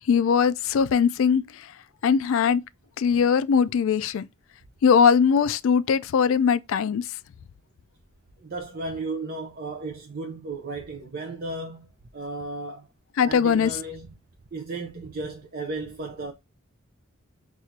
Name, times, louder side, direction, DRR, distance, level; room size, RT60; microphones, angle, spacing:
voice 1, 0.1-1.4 2.0-2.6 3.0-4.2 4.8-7.0 13.2-13.7, left 6 dB, 60° left, 0.3 m, -20 dB
voice 2, 8.4-11.9 12.1-12.9 13.2-14.1 14.5-16.3, right 3 dB, 40° right, 0.6 m, -34 dB
6.1 x 2.4 x 2.7 m
head